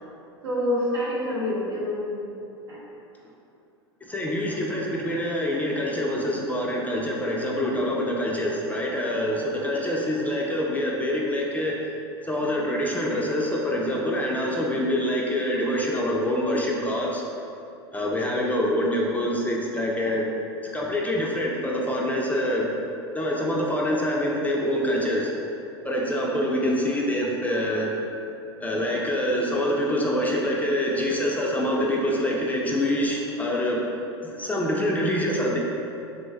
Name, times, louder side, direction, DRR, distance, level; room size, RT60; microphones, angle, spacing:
voice 1, 0.4-2.2 2.7-2.8 34.7-35.1, left 1 dB, 80° right, -7 dB, 1.0 m, -28 dB
voice 2, 4.1-11.7 12.3-17.2 17.9-20.2 20.7-22.7 23.1-25.3 25.8-28.0 28.6-33.8 34.3-35.6, equal, 10° left, -2 dB, 0.3 m, -25 dB
3.1 x 2.0 x 3.3 m, 2.7 s
hypercardioid pair, 90°, 14 cm